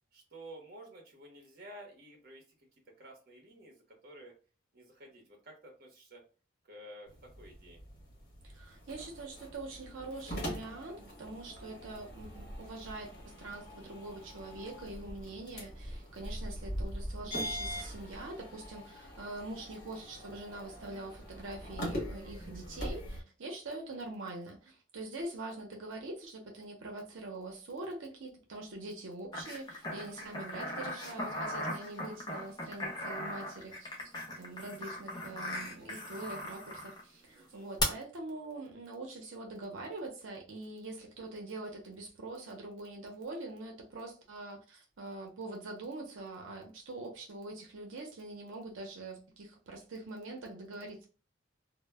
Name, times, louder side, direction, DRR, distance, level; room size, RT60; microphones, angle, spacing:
voice 1, 0.1-2.7 3.0-4.3 4.7-6.2 6.7-7.1 7.3-7.8 16.0-16.3 23.9-24.0 37.3-37.7, right 1 dB, 50° right, 0.7 m, -52 dB
sound 1, 7.1-23.2, equal, 50° left, 0.9 m, -42 dB
voice 2, 8.4-33.9 34.4-51.1, right 2 dB, 90° right, 0.6 m, -44 dB
sound 2, 29.3-37.0 37.8-37.9, left 2 dB, 20° left, 0.5 m, -39 dB
2.0 x 2.0 x 3.3 m
head